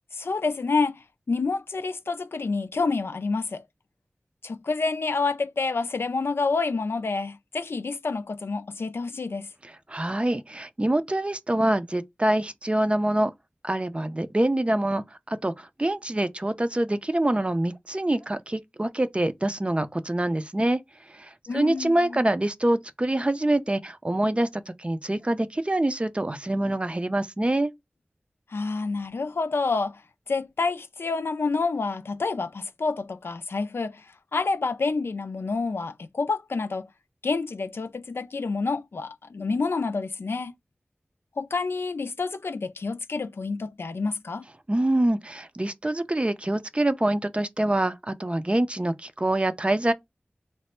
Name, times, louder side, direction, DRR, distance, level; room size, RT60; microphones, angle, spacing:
voice 1, 0.1-3.6 4.4-9.5 21.5-22.2 28.5-30.0 30.3-34.1 34.3-36.9 37.2-40.5 41.4-44.4, left 4 dB, 75° left, 0.3 m, -28 dB
voice 2, 9.9-13.3 13.6-20.8 21.2-27.7 44.7-49.9, right 1 dB, 30° right, 0.5 m, -25 dB
3.2 x 2.0 x 4.1 m
wide cardioid pair, 40°, 4 cm